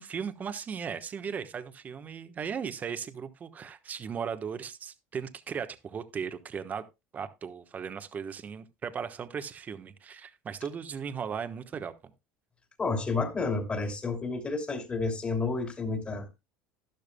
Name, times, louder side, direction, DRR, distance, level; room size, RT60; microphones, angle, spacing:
voice 1, 0.0-6.8 7.1-12.1, right 7 dB, 30° right, 1.1 m, -37 dB
voice 2, 12.8-16.3, left 3 dB, 20° left, 2.9 m, -30 dB
12.0 x 12.0 x 2.2 m
supercardioid pair, 120°, 5 cm